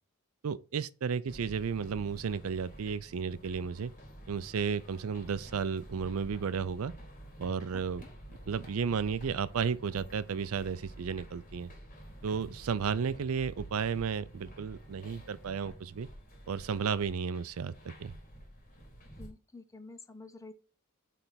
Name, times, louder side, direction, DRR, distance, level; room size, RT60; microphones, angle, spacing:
voice 1, 0.4-3.9 4.3-6.9 7.4-8.0 8.5-11.7 12.2-16.1 16.5-18.1, right 6 dB, 80° right, 0.4 m, -33 dB
sound 1, 1.3-19.3, right 1 dB, 35° left, 2.1 m, -50 dB
voice 2, 7.7-8.1 19.2-20.5, left 3 dB, 15° left, 0.6 m, -49 dB
8.4 x 3.4 x 4.1 m
head